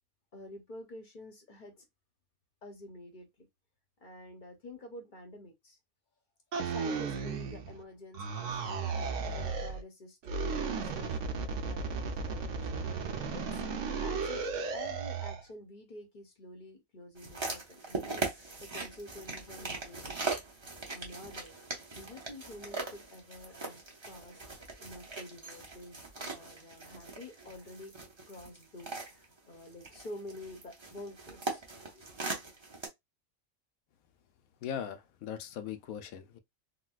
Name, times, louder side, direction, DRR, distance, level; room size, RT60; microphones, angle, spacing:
voice 1, 0.3-1.8 2.6-3.5 4.0-5.8 6.6-12.9 13.3-13.6 14.0-14.4 14.7-20.4 20.9-21.5 21.9-27.9 28.3-31.6 31.9-32.1, left 1 dB, 45° left, 0.8 m, -49 dB
sound 1, 6.5-7.8 8.1-9.8 10.2-15.4, right 5 dB, 65° right, 0.9 m, -35 dB
sound 2, 17.2-32.9, right 3 dB, 30° right, 0.6 m, -40 dB
voice 2, 34.6-36.4, left 8 dB, 85° left, 1.0 m, -39 dB
3.9 x 2.2 x 2.3 m
omnidirectional pair, 1.4 m